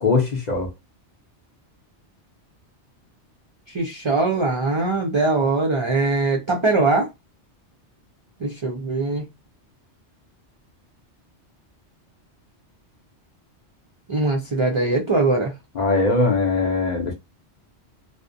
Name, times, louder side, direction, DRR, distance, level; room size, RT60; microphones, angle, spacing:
voice 1, 0.0-0.7 15.8-17.1, left 3 dB, 50° left, 0.6 m, -20 dB
voice 2, 3.7-7.1 8.4-9.3 14.1-15.5, right 3 dB, 50° right, 0.3 m, -21 dB
2.5 x 2.0 x 2.5 m
omnidirectional pair, 1.2 m